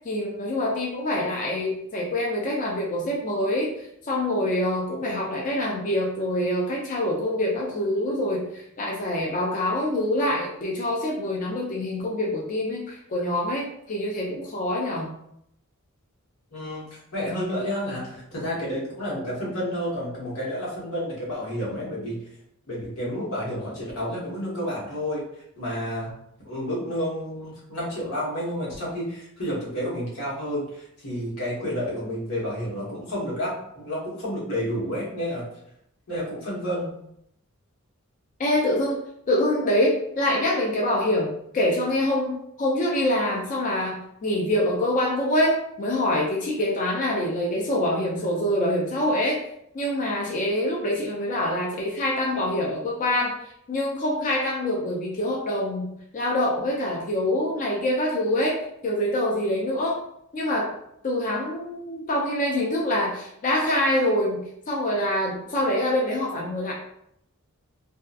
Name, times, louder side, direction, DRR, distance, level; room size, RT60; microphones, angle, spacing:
voice 1, 0.0-15.1 38.4-39.0 39.3-49.4 49.7-53.3 53.7-55.9 56.1-58.6 58.8-60.0 60.3-60.7 61.0-66.7, left 1 dB, 35° left, -2 dB, 0.4 m, -25 dB
voice 2, 16.5-16.8 17.1-22.2 22.7-25.2 25.6-26.1 26.4-35.5 36.1-36.9, equal, 90° left, -6 dB, 1.1 m, -30 dB
2.7 x 2.2 x 2.4 m, 0.74 s
head